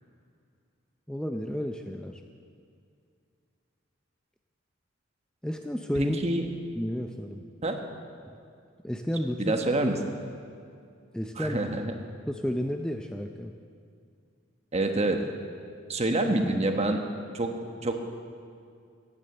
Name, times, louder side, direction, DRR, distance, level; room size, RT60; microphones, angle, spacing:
voice 1, 1.1-2.2 5.4-6.2 6.8-7.4 8.2-8.3 8.8-9.9 11.1-11.7 12.3-13.5, equal, 5° left, 4 dB, 0.5 m, -32 dB
voice 2, 5.9-6.5 7.6-7.8 9.4-9.9 11.4-11.9 14.7-15.2 15.9-17.0 17.3-17.9, right 2 dB, 35° right, 4 dB, 1.3 m, -27 dB
16.5 x 10.0 x 7.8 m, 2.3 s
head